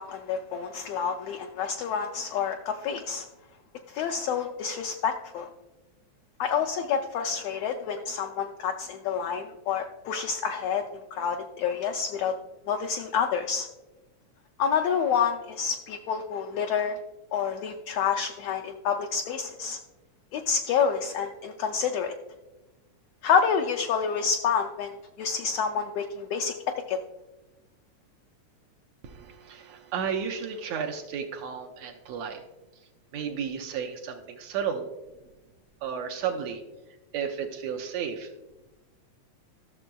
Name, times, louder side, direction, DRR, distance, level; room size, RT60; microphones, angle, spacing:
voice 1, 0.0-3.3 3.9-5.5 6.4-12.3 12.7-13.7 14.6-17.0 17.3-19.8 20.3-22.1 23.2-26.5 26.9-27.0, left 6 dB, 80° left, 5 dB, 1.4 m, -28 dB
voice 2, 29.0-32.4 33.1-34.9 35.8-36.6 37.1-38.3, right 7 dB, 75° right, 4 dB, 1.7 m, -33 dB
13.5 x 6.8 x 2.2 m, 1.0 s
omnidirectional pair, 3.4 m